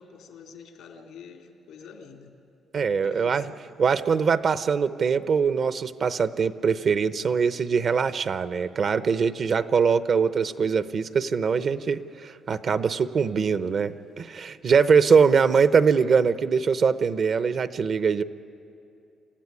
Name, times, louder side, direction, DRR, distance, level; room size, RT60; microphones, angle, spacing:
voice 1, 0.0-2.3 3.0-3.6 14.6-15.5, left 6 dB, 85° left, 2 dB, 3.0 m, -47 dB
voice 2, 2.7-3.4 3.8-18.2, right 6 dB, 55° right, 13 dB, 0.7 m, -22 dB
27.5 x 15.0 x 9.8 m, 2.7 s
cardioid pair, 90°, 0 cm